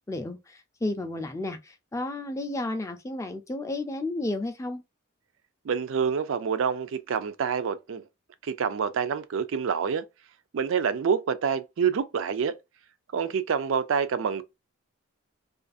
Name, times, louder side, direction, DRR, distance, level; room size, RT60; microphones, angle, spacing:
voice 1, 0.1-4.8, left 2 dB, 15° left, 0.4 m, -32 dB
voice 2, 5.6-8.0 8.4-10.1 10.5-12.6 13.1-14.4, right 6 dB, 70° right, 0.4 m, -27 dB
2.4 x 2.4 x 2.4 m
head